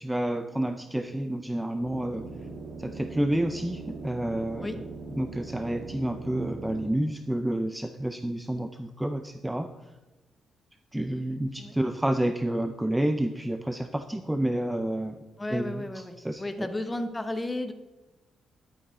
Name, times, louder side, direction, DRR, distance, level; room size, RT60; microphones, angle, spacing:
voice 1, 0.0-2.2 2.8-4.8 5.2-9.7 10.9-15.2 15.5-15.8 16.2-16.7, right 1 dB, 5° right, 7 dB, 0.5 m, -29 dB
sound 1, 1.8-6.9, right 3 dB, 60° right, 1.9 m, -41 dB
voice 2, 15.4-17.7, left 1 dB, 15° left, 8 dB, 0.9 m, -33 dB
11.0 x 8.9 x 3.7 m, 1.1 s
cardioid pair, 120°, 0 cm